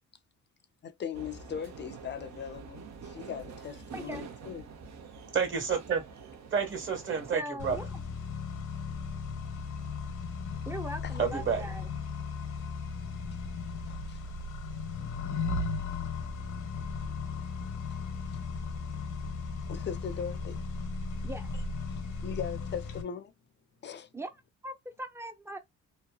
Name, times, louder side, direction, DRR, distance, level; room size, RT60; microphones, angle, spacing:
voice 1, 0.8-4.7 11.0-11.1 13.8-14.2 19.7-20.6 21.9-23.3 23.8-24.1, left 8 dB, 35° left, 0.6 m, -39 dB
sound 1, 1.1-7.4, right 5 dB, 65° right, 0.8 m, -46 dB
voice 2, 3.9-4.2 7.3-8.0 10.7-11.9 21.2-21.5 24.1-24.3 24.6-25.6, right 1 dB, 10° right, 0.6 m, -40 dB
voice 3, 5.3-6.1 6.5-7.8 11.2-11.6, right 6 dB, 40° right, 1.4 m, -29 dB
Accelerating revving vroom, 7.6-23.0, left 4 dB, 85° left, 1.0 m, -36 dB
2.9 x 2.1 x 2.2 m
cardioid pair, 90°, 30 cm